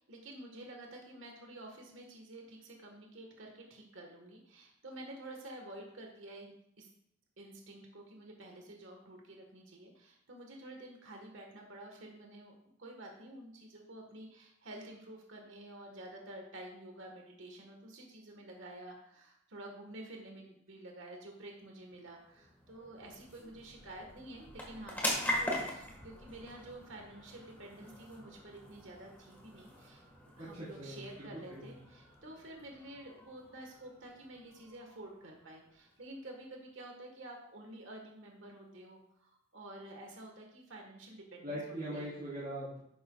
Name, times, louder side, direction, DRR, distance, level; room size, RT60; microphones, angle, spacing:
voice 1, 0.0-6.9 7.4-12.5 12.8-30.0 30.4-41.6 41.9-42.1, right 1 dB, 70° right, 1 dB, 1.4 m, -50 dB
sound 1, 21.6-36.4, left 1 dB, 10° left, 1.5 m, -43 dB
voice 2, 30.4-31.6 41.4-42.8, right 1 dB, 40° right, -10 dB, 3.2 m, -41 dB
11.0 x 7.6 x 2.3 m, 0.75 s
head